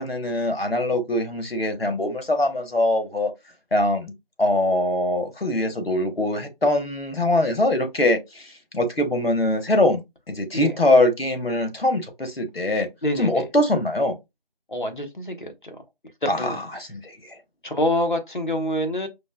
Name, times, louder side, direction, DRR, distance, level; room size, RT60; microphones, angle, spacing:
voice 1, 0.0-3.3 3.7-4.1 4.4-10.0 10.3-12.9 13.2-14.2 16.3-17.4, left 1 dB, 90° left, 1.1 m, -23 dB
voice 2, 13.0-13.4 14.7-15.8 16.2-16.6 17.6-19.1, left 1 dB, 55° left, 1.0 m, -26 dB
5.1 x 2.3 x 2.2 m
figure-of-eight pair, 175°, 29 cm